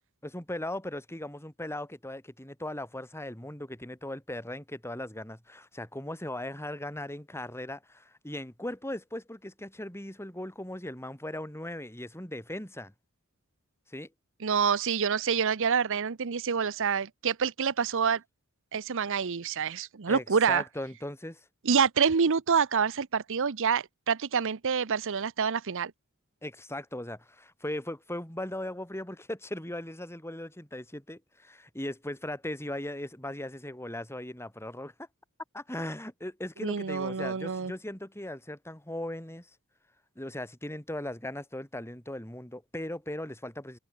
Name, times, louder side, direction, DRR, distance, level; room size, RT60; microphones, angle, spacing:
voice 1, 0.2-12.9 13.9-14.1 20.1-21.4 26.4-35.1 35.5-39.5 40.2-43.8, left 1 dB, 10° left, 5.3 m, -38 dB
voice 2, 14.4-18.2 18.7-20.6 21.6-25.9 36.6-37.7, right 6 dB, 65° right, 0.7 m, -27 dB
head